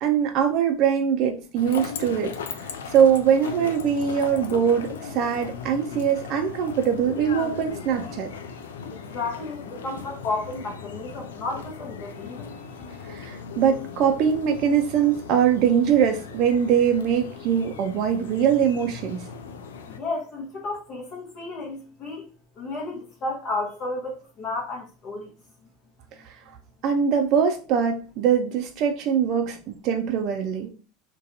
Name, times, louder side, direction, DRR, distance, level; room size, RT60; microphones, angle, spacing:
voice 1, 0.0-8.3 13.1-19.2 26.3-26.4 26.8-30.7, right 8 dB, 50° right, 0.3 m, -22 dB
sound 1, 1.6-20.0, left 5 dB, 80° left, 0.3 m, -38 dB
voice 2, 8.9-12.6 19.9-22.3 22.6-25.3, left 3 dB, 45° left, 0.7 m, -32 dB
2.7 x 2.2 x 2.5 m
hypercardioid pair, 90°, 0 cm